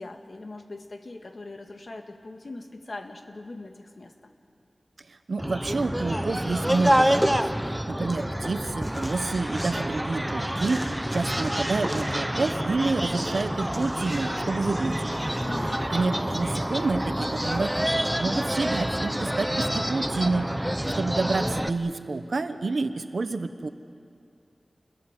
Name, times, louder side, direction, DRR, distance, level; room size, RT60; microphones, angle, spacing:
voice 1, 0.0-4.3 15.4-15.9, left 2 dB, 65° left, 5 dB, 1.9 m, -40 dB
voice 2, 5.3-15.2 15.9-20.5 20.9-23.7, right 3 dB, 80° right, 9 dB, 1.2 m, -28 dB
sound 1, 5.4-21.7, equal, 5° right, 0.8 m, -27 dB
28.5 x 21.5 x 7.5 m, 2.5 s
wide cardioid pair, 80°, 0 cm